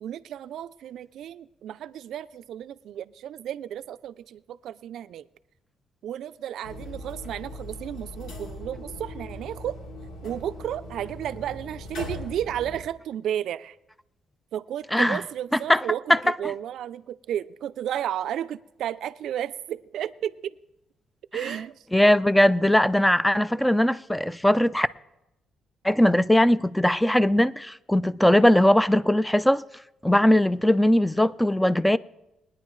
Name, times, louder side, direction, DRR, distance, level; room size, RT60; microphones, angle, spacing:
voice 1, 0.0-5.3 6.0-9.8 10.2-13.8 14.5-20.6 21.3-21.8, right 10 dB, 75° right, 0.4 m, -33 dB
sound 1, 6.6-12.8, left 1 dB, 80° left, 2.7 m, -39 dB
voice 2, 21.9-24.9 25.8-29.6 30.0-32.0, left 1 dB, 5° left, 0.4 m, -20 dB
22.0 x 9.7 x 3.2 m
cardioid pair, 90°, 0 cm